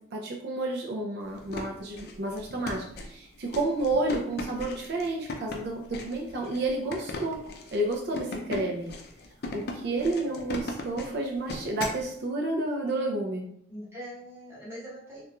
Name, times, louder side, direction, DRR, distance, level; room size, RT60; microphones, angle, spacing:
voice 1, 0.1-7.4 7.7-8.9 9.5-13.5, right 2 dB, 55° right, 0 dB, 0.4 m, -30 dB
sound 1, 1.3-12.0, left 2 dB, 55° left, 0.4 m, -38 dB
voice 2, 10.1-10.5 13.7-15.3, equal, 15° right, -7 dB, 0.9 m, -42 dB
2.9 x 2.3 x 2.3 m, 0.68 s
head